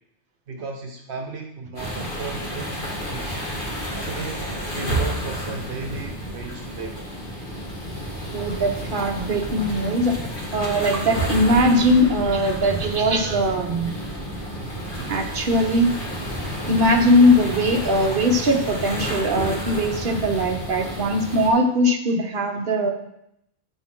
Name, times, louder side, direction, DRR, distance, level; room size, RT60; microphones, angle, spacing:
voice 1, 0.5-3.4 4.0-7.1, right 4 dB, 70° right, 2 dB, 1.1 m, -35 dB
sound 1, 1.8-21.5, equal, 50° left, 2.3 m, -30 dB
voice 2, 8.3-10.1 10.5-13.9 15.1-15.9 16.7-22.9, equal, 55° right, 2 dB, 1.2 m, -20 dB
11.0 x 6.9 x 3.7 m, 0.80 s
omnidirectional pair, 1.1 m